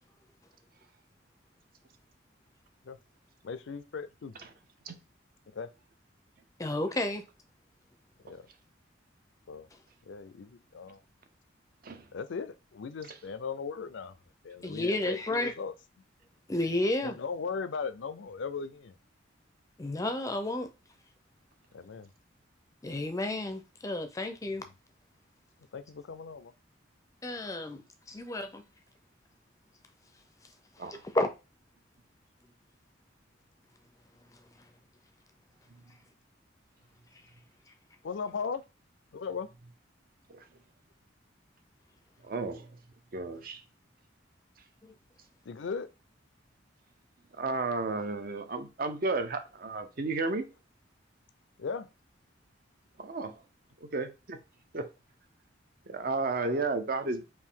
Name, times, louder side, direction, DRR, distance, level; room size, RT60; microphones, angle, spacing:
voice 1, 3.4-4.4 5.5-5.7 8.2-8.5 9.5-9.7 10.1-11.0 12.1-14.2 14.4-15.7 17.0-18.9 21.7-22.1 24.6-24.7 25.7-26.5 38.0-38.6 39.1-39.5 45.5-45.9 51.6-51.9, left 5 dB, 70° left, 0.4 m, -38 dB
voice 2, 6.6-7.2 14.6-15.5 16.5-17.2 19.8-20.7 22.8-24.6 27.2-27.8 28.1-28.6 30.9-31.3 44.8-44.9, left 1 dB, 15° left, 0.5 m, -31 dB
voice 3, 42.2-42.7 43.1-43.6 47.3-50.5 53.0-53.4 53.8-54.4 54.7-54.9 55.9-57.3, right 3 dB, 50° right, 0.6 m, -33 dB
4.4 x 2.6 x 3.6 m
head